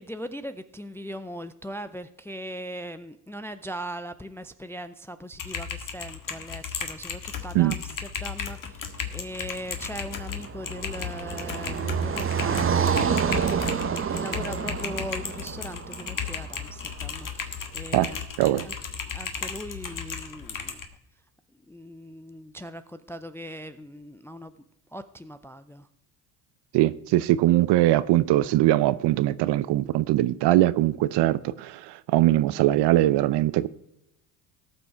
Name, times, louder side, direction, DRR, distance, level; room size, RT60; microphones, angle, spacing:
voice 1, 0.0-13.2 14.1-18.2 18.6-18.7 19.1-20.8 21.7-24.6 24.9-25.9, equal, 5° left, 0.4 m, -39 dB
Typing, 5.3-20.9, left 7 dB, 40° left, 1.7 m, -35 dB
Car passing by, 9.7-16.9, right 7 dB, 25° right, 0.9 m, -28 dB
voice 2, 26.7-33.7, right 15 dB, 55° right, 0.7 m, -21 dB
17.5 x 6.0 x 4.5 m
hypercardioid pair, 70°, 49 cm